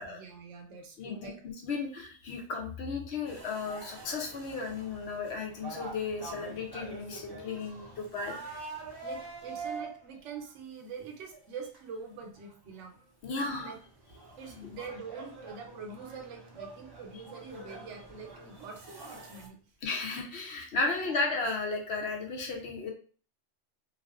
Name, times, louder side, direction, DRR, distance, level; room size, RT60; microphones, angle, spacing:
voice 1, 0.0-1.4 9.0-13.0 13.3-13.8 14.4-19.6, right 5 dB, 85° right, 3 dB, 1.0 m, -44 dB
voice 2, 1.0-1.3 1.6-8.4 13.2-13.7 19.8-22.9, left 3 dB, 65° left, 2 dB, 0.8 m, -34 dB
sound 1, 3.2-10.5 11.2-11.4 11.7-11.8 12.5-12.6 13.0-13.1 13.3-19.5, right 3 dB, 30° right, 0.4 m, -45 dB
2.4 x 2.4 x 2.3 m, 0.41 s
omnidirectional pair, 1.2 m